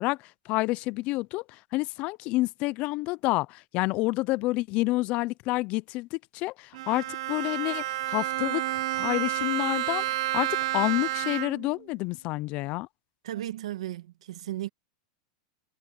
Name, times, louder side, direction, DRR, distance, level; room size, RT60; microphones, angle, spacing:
voice 1, 0.0-12.9, left 21 dB, 40° left, 0.5 m, -29 dB
Bowed string instrument, 6.7-11.8, right 15 dB, 65° right, 0.8 m, -30 dB
voice 2, 13.2-14.7, right 13 dB, 85° right, 1.6 m, -35 dB
supercardioid pair, 150°, 3 cm